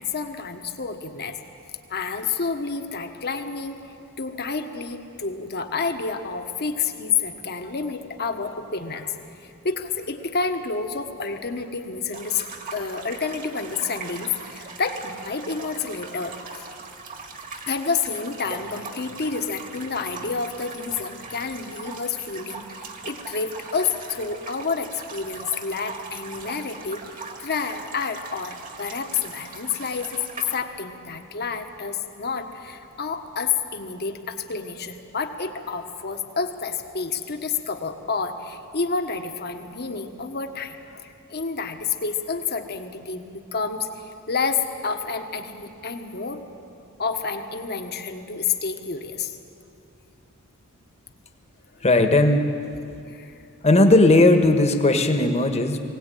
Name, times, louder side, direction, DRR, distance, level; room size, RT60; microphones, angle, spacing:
voice 1, 0.0-1.4 1.9-16.7 17.7-46.4 47.0-49.4 51.7-51.8 53.1-53.4, left 5 dB, 50° left, 6 dB, 1.4 m, -29 dB
sound 1, 12.1-30.6, right 4 dB, 40° right, 1.8 m, -40 dB
voice 2, 51.8-52.5 53.6-55.8, left 2 dB, 30° left, 6 dB, 1.4 m, -17 dB
21.0 x 17.5 x 9.2 m, 2.7 s
head